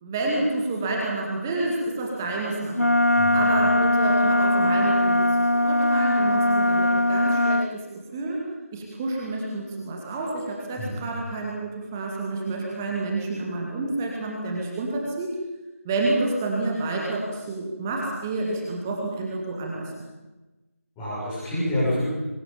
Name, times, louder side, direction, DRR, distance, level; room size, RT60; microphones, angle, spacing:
voice 1, 0.0-3.0 3.3-5.2 5.5-7.8 8.1-8.4 8.7-15.3 15.8-20.1, right 2 dB, 10° right, -2 dB, 2.2 m, -29 dB
Wind instrument woodwind instrument, 2.7-7.7, left 1 dB, 90° left, 0.9 m, -20 dB
voice 2, 3.1-3.5 10.8-11.0 21.0-22.0, left 1 dB, 5° left, -9 dB, 7.2 m, -27 dB
23.5 x 20.0 x 7.1 m, 1.1 s
figure-of-eight pair, 165°, 8 cm